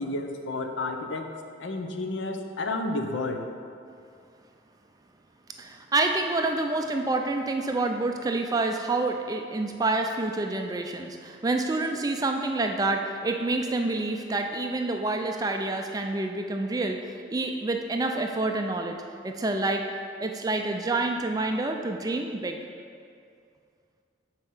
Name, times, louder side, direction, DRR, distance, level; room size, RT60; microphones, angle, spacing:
voice 1, 0.0-1.3 1.6-3.4, left 2 dB, 75° left, 5 dB, 0.6 m, -31 dB
voice 2, 5.6-19.0 19.2-19.8 20.2-22.6, right 2 dB, 20° right, 3 dB, 0.4 m, -28 dB
7.4 x 4.4 x 5.5 m, 2.3 s
head